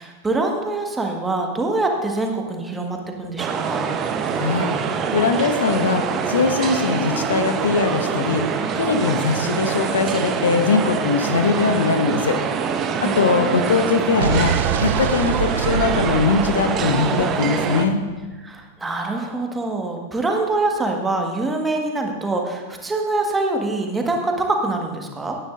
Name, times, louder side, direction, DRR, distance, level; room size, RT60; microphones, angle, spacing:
voice 1, 0.0-3.9 13.0-13.6 18.4-25.4, right 2 dB, 10° right, 2 dB, 1.6 m, -24 dB
sound 1, 3.4-17.9, right 6 dB, 30° right, 0.9 m, -24 dB
voice 2, 4.4-4.7 5.1-8.4 8.8-12.4 13.0-18.0, left 4 dB, 65° left, 7 dB, 0.9 m, -21 dB
Explosion, 14.2-18.3, right 11 dB, 60° right, 0.3 m, -26 dB
16.5 x 10.5 x 2.6 m, 1.3 s
figure-of-eight pair, 90°, 0 cm